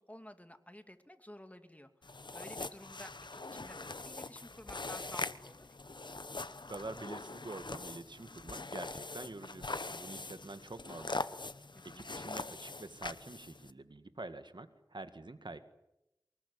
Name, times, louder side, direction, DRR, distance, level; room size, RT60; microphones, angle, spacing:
voice 1, 0.0-3.2 3.5-5.7 11.7-12.3, left 1 dB, 20° left, 8 dB, 2.4 m, -53 dB
sound 1, 2.0-13.7, left 3 dB, 85° left, 1.0 m, -42 dB
voice 2, 6.7-11.2 11.8-15.6, right 2 dB, 85° right, 10 dB, 1.9 m, -46 dB
24.0 x 20.5 x 9.8 m, 0.88 s
wide cardioid pair, 40°, 8 cm